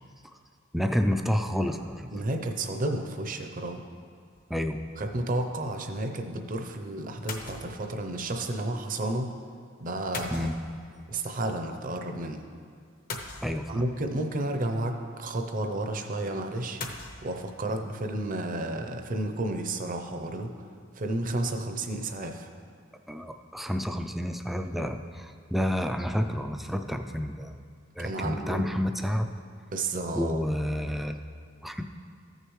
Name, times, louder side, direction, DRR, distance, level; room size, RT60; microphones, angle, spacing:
voice 1, 0.7-2.1 4.5-4.8 10.3-10.6 13.4-13.8 23.1-27.5 28.0-29.3 30.1-31.2 31.6-31.8, equal, ahead, 6 dB, 0.3 m, -29 dB
voice 2, 2.1-3.8 5.0-9.3 9.8-10.5 11.1-12.4 13.7-16.8 17.2-20.5 21.0-22.5 28.0-28.8 29.7-30.4, right 2 dB, 40° right, 5 dB, 0.6 m, -31 dB
sound 1, 4.3-4.6 7.3-7.9 10.1-11.1 13.1-14.0 16.8-17.2, left 3 dB, 45° left, 0.8 m, -39 dB
14.0 x 6.5 x 3.1 m, 2.3 s
head